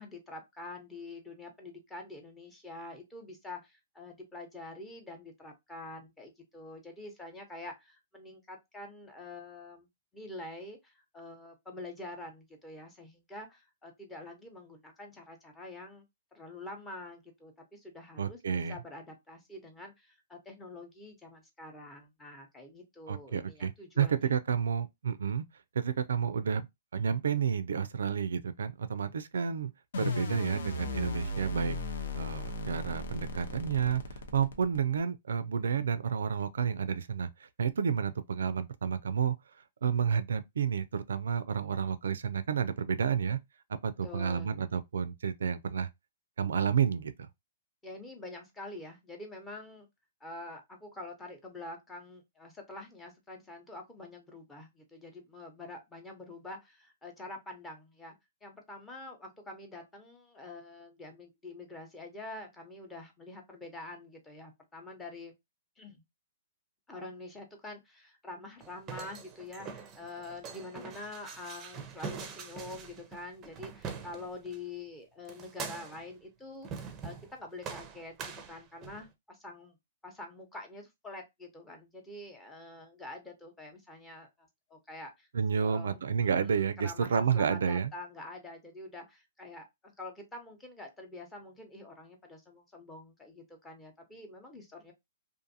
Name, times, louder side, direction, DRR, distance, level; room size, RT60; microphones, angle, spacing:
voice 1, 0.0-9.9 10.1-16.0 16.3-24.2 44.0-44.5 47.8-49.9 50.2-58.2 58.4-65.3 65.8-66.0 66.9-78.2 78.5-79.8 80.0-85.3 85.6-86.0 86.8-94.9, left 2 dB, 10° left, 0.8 m, -46 dB
voice 2, 18.2-18.8 23.1-25.4 25.7-26.7 26.9-29.7 30.0-31.8 32.1-34.0 34.3-37.3 37.6-39.3 39.8-43.4 43.7-45.9 46.4-47.3 85.3-87.9, right 7 dB, 80° right, 0.3 m, -30 dB
sound 1, 29.9-35.0, left 2 dB, 75° left, 0.7 m, -36 dB
sound 2, 68.6-74.6 75.3-76.1 76.6-77.3 77.6-79.1, right 6 dB, 25° right, 0.5 m, -43 dB
2.5 x 2.5 x 2.6 m
hypercardioid pair, 140°, 0 cm